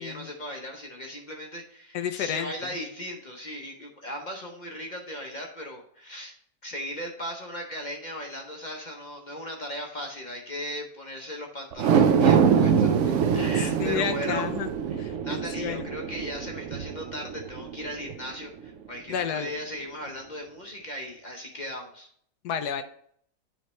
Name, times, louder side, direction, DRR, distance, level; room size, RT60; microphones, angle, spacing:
voice 1, 0.0-6.3 6.6-14.4 14.9-22.1, equal, 40° left, 1 dB, 0.7 m, -37 dB
voice 2, 1.9-2.5 13.8-14.7 15.0-15.8 19.1-19.5 22.4-22.8, left 8 dB, 80° left, 9 dB, 1.1 m, -31 dB
sound 1, 11.7-18.2 18.6-18.7, right 7 dB, 70° right, 0.7 m, -24 dB
9.0 x 3.2 x 4.2 m, 0.64 s
omnidirectional pair, 1.7 m